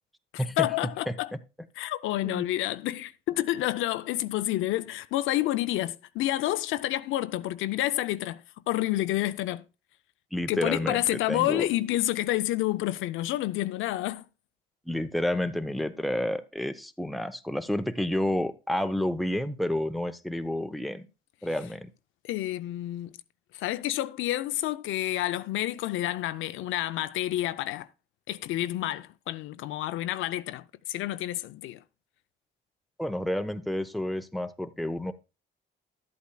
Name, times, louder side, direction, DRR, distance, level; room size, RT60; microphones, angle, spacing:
voice 1, 0.3-1.3 1.8-9.6 10.5-14.2 22.2-23.1 23.5-27.9 28.3-31.8, left 15 dB, 85° left, 0.5 m, -29 dB
voice 2, 10.3-11.6 14.9-21.1 21.4-21.9 33.0-35.1, left 1 dB, ahead, 0.6 m, -30 dB
11.5 x 8.3 x 2.2 m
cardioid pair, 90°, 20 cm